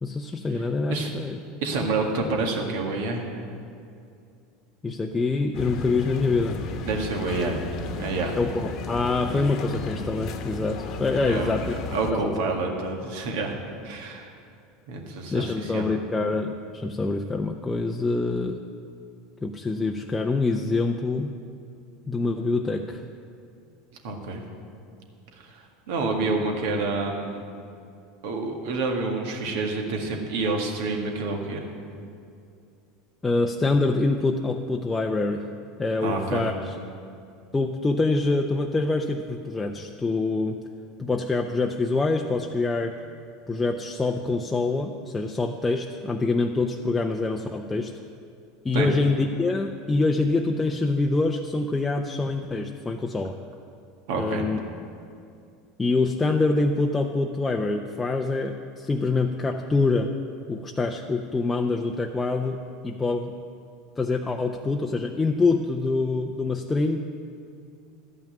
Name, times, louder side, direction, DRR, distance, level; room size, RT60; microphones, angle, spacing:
voice 1, 0.0-1.4 4.8-6.6 8.4-11.7 12.1-12.5 15.3-18.6 19.4-21.4 22.1-23.0 33.2-35.5 35.8-36.8 37.5-40.6 41.0-43.0 43.5-48.0 48.6-53.4 54.2-54.6 55.8-60.2 60.5-63.4 64.0-67.0, left 3 dB, 15° left, 2 dB, 0.6 m, -25 dB
voice 2, 1.6-3.4 6.8-7.6 8.0-8.3 11.3-11.5 11.9-13.6 13.8-14.3 14.9-15.9 24.0-24.4 25.4-27.4 28.2-31.7 36.0-36.4 48.7-48.9 54.1-54.4, right 3 dB, 75° right, 2 dB, 1.8 m, -28 dB
sound 1, 5.5-12.1, left 3 dB, 55° left, 1.1 m, -34 dB
12.0 x 5.8 x 8.9 m, 2.4 s
supercardioid pair, 105°, 0 cm